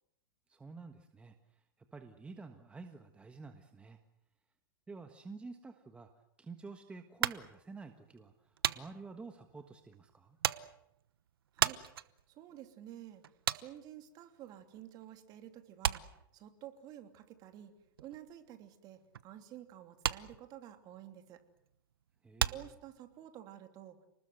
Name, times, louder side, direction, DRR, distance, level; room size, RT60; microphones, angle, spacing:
voice 1, 0.5-1.6 1.9-4.0 4.9-6.1 6.4-10.4 22.2-22.7, right 4 dB, 10° right, 6 dB, 1.4 m, -50 dB
sound 1, 7.2-15.1 15.3-23.4, right 10 dB, 90° right, 1.0 m, -38 dB
voice 2, 12.3-13.2 13.5-16.0 16.3-17.7 18.0-21.4 22.5-24.1, right 12 dB, 35° right, 7 dB, 2.9 m, -51 dB
29.5 x 20.0 x 7.9 m, 0.79 s
hypercardioid pair, 140°, 12 cm